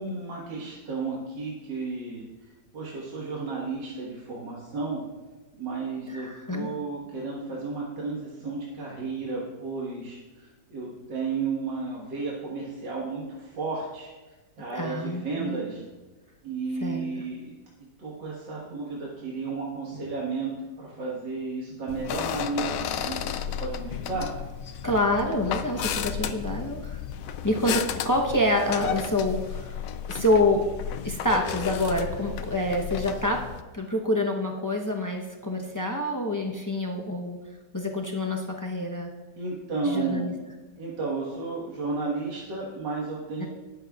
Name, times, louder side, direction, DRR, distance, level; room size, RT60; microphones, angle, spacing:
voice 1, 0.0-5.0 5.5-14.1 14.6-15.8 16.4-17.5 18.0-20.5 20.8-24.3 39.4-40.3 40.8-43.5, right 4 dB, 85° right, -5 dB, 2.2 m, -33 dB
voice 2, 6.1-6.7 14.7-15.6 16.8-17.0 24.8-27.0 27.4-29.8 30.1-30.7 31.0-33.4 33.7-37.4 37.7-39.1 39.8-40.3 43.4-43.5, left 1 dB, 25° left, 0 dB, 0.4 m, -27 dB
sound 1, 21.9-33.6, left 9 dB, 70° left, 0.8 m, -33 dB
20.0 x 7.6 x 2.4 m, 1.2 s
omnidirectional pair, 1.9 m